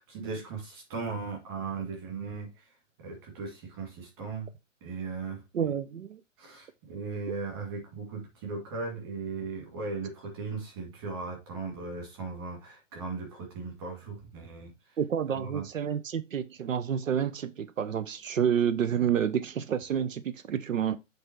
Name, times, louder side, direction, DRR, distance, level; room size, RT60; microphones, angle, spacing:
voice 1, 0.0-2.7 3.0-4.5 4.8-5.4 6.4-14.7 15.3-15.6, right 4 dB, 20° right, 2.4 m, -37 dB
voice 2, 5.5-6.2 7.3-7.4 15.0-21.0, right 8 dB, 85° right, 0.8 m, -29 dB
8.1 x 3.5 x 4.6 m
hypercardioid pair, 175°, 38 cm